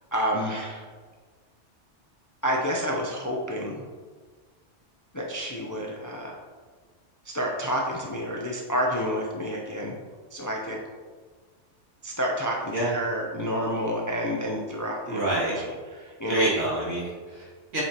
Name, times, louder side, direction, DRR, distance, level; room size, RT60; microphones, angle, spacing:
voice 1, 0.1-0.9 2.4-3.8 5.1-6.4 7.2-10.0 10.3-10.8 12.0-16.5, equal, 25° left, -1 dB, 0.4 m, -29 dB
voice 2, 15.1-15.5 16.3-17.8, right 1 dB, 85° right, -7 dB, 2.5 m, -27 dB
7.8 x 4.8 x 2.9 m, 1.5 s
omnidirectional pair, 1.2 m